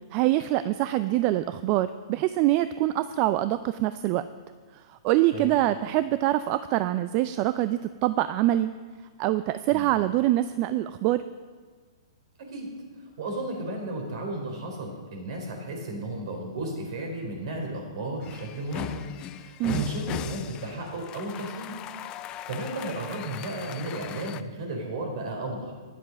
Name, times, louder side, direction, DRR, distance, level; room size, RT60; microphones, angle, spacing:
voice 1, 0.1-4.2 4.7-8.7 9.2-11.2 19.6-19.9, right 15 dB, 35° right, 13 dB, 0.4 m, -25 dB
voice 2, 13.2-21.9 22.2-25.7, right 1 dB, 60° right, 2 dB, 4.0 m, -34 dB
sound 1, 18.2-24.4, left 12 dB, 30° left, 0.5 m, -39 dB
12.5 x 10.5 x 5.3 m, 1.5 s
hypercardioid pair, 125°, 3 cm